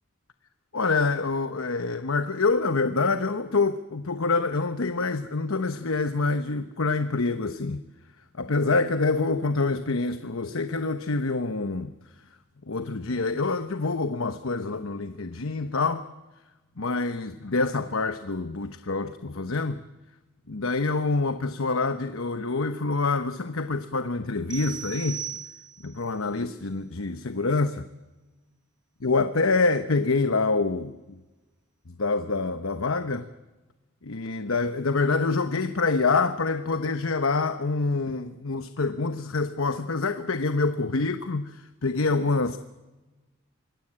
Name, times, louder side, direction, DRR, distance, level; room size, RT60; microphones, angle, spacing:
voice 1, 0.7-7.8 8.4-11.9 12.7-16.0 16.8-19.8 20.5-25.2 25.8-27.9 29.0-31.2 31.9-33.3 34.0-42.6, left 3 dB, 70° left, 1.0 m, -26 dB
sound 1, 24.5-26.0, right 8 dB, 20° right, 1.1 m, -37 dB
26.0 x 21.0 x 8.8 m
head